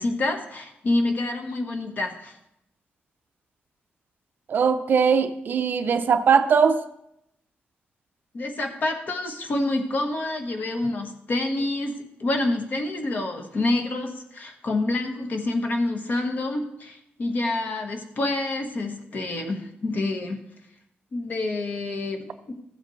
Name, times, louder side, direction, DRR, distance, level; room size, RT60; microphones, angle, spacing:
voice 1, 0.0-2.4 8.3-20.4 21.1-22.5, left 2 dB, 45° left, 4 dB, 1.3 m, -27 dB
voice 2, 4.5-6.8, right 6 dB, 50° right, 10 dB, 0.5 m, -20 dB
14.5 x 7.5 x 3.2 m, 0.82 s
wide cardioid pair, 165°, 4 cm